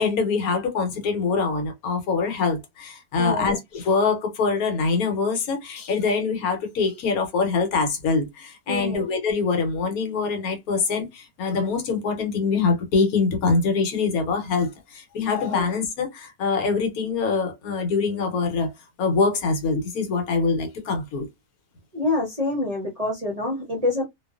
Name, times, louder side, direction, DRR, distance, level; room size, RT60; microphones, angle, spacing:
voice 1, 0.0-18.7 19.0-21.3, left 4 dB, 70° left, 1.2 m, -24 dB
voice 2, 3.2-3.5 8.7-9.0 15.5-15.7 21.9-24.1, left 2 dB, 40° right, 0.6 m, -26 dB
2.5 x 2.3 x 2.3 m
omnidirectional pair, 1.6 m